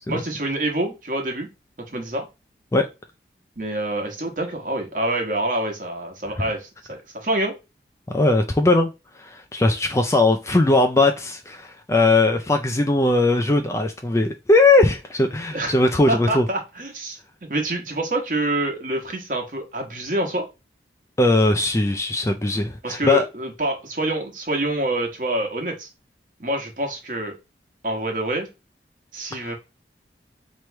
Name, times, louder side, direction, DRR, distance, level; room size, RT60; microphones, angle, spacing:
voice 1, 0.1-1.5 1.9-2.2 3.6-7.5 15.5-15.7 16.1-17.2 17.5-20.5 22.8-25.9 26.4-27.3 27.8-28.5 29.1-29.5, right 1 dB, 50° right, 1.2 m, -26 dB
voice 2, 8.1-8.9 9.2-16.5 21.2-23.2 29.4-29.5, left 2 dB, 15° left, 0.4 m, -19 dB
3.1 x 3.0 x 4.5 m
head